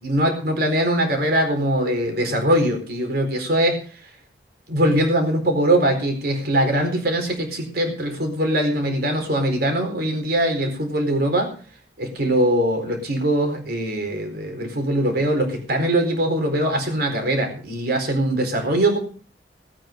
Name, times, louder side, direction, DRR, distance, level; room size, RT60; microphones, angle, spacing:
voice 1, 0.0-3.8 4.7-11.5 12.0-19.0, right 1 dB, 60° right, 3 dB, 4.4 m, -22 dB
19.0 x 9.2 x 5.3 m, 0.40 s
head